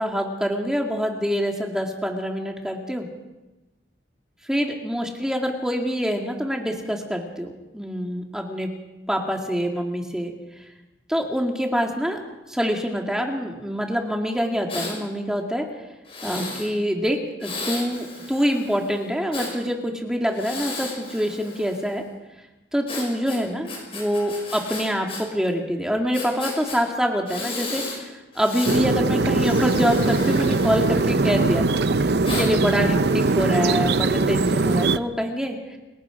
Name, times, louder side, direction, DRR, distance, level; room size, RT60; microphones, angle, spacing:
voice 1, 0.0-3.1 4.5-8.7 9.1-10.3 11.1-12.2 12.5-15.7 16.2-22.0 22.7-35.8, equal, 5° right, 1 dB, 2.1 m, -25 dB
Breathing, 14.7-15.0 16.1-16.7 17.4-19.5 20.3-21.9 22.9-25.2 25.5-25.6 26.1-26.8 27.3-28.0 28.3-28.8 29.3-31.5 32.2-32.5, left 3 dB, 30° left, 5.4 m, -34 dB
sound 1, 28.7-35.0, right 3 dB, 60° right, 0.6 m, -21 dB
29.5 x 17.5 x 5.0 m, 1.1 s
head